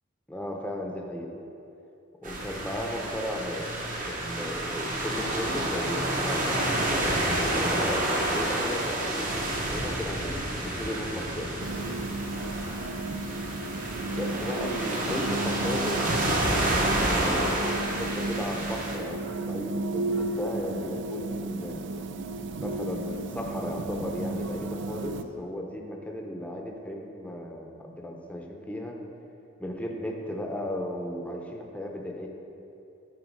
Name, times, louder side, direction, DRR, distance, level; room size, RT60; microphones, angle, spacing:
voice 1, 0.3-1.3 2.2-3.7 4.0-6.7 7.3-11.5 14.2-16.0 16.5-21.8 22.6-29.0 29.6-32.3, left 1 dB, 5° left, 1 dB, 0.8 m, -35 dB
sound 1, 2.2-19.0, right 1 dB, 40° right, 1.2 m, -29 dB
sound 2, 11.6-25.2, right 2 dB, 60° right, 0.5 m, -34 dB
13.5 x 4.7 x 4.7 m, 2.8 s
head